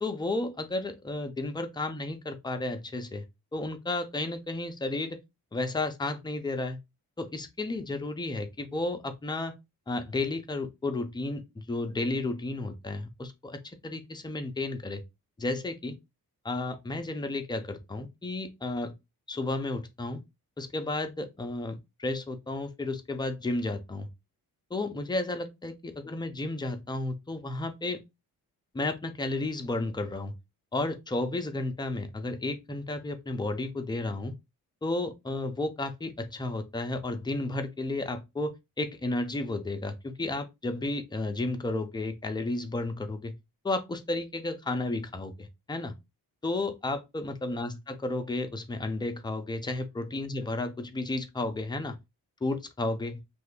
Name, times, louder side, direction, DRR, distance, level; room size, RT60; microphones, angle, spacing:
voice 1, 0.0-3.2 3.5-5.2 5.5-6.8 7.2-9.5 9.9-15.0 15.4-16.0 16.4-18.9 19.3-20.2 20.6-24.1 24.7-28.0 28.7-30.3 30.7-34.4 34.8-43.4 43.6-45.9 46.4-52.0 52.4-53.2, left 2 dB, 10° left, 0.4 m, -32 dB
2.7 x 2.3 x 3.4 m
wide cardioid pair, 120°, 37 cm